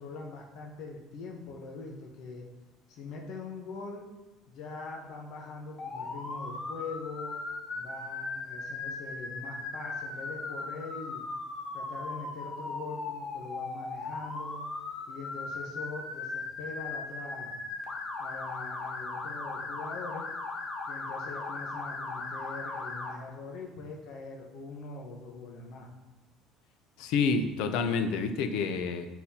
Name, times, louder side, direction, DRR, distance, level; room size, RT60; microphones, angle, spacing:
voice 1, 0.0-2.4 2.9-4.1 4.5-7.4 7.7-11.2 11.7-14.6 15.1-17.6 18.2-20.3 20.8-25.9, left 3 dB, 55° left, -1 dB, 1.0 m, -42 dB
Motor vehicle (road) / Siren, 5.8-23.1, left 3 dB, 30° left, 0.9 m, -38 dB
voice 2, 27.0-29.1, left 5 dB, 75° left, 8 dB, 0.6 m, -28 dB
10.0 x 4.1 x 2.8 m, 1.1 s
cardioid pair, 160°, 0 cm